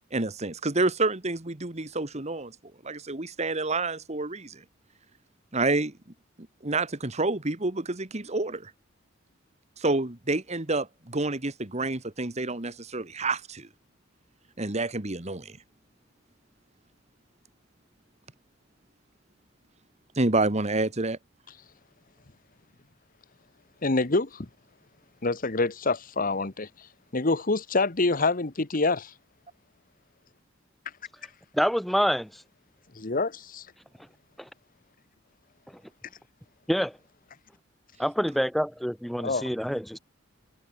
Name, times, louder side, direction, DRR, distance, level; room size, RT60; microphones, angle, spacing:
voice 1, 0.1-2.6 2.8-4.6 5.5-5.9 6.6-8.7 9.8-13.7 14.6-15.6 20.2-21.2, right 2 dB, 35° right, 1.8 m, -28 dB
voice 2, 23.8-24.5 25.2-26.7 27.1-29.1 32.9-33.6 39.2-39.4, left 3 dB, 45° left, 1.3 m, -26 dB
voice 3, 31.5-32.4 34.4-34.5 36.7-37.0 38.0-40.0, equal, ahead, 1.2 m, -27 dB
head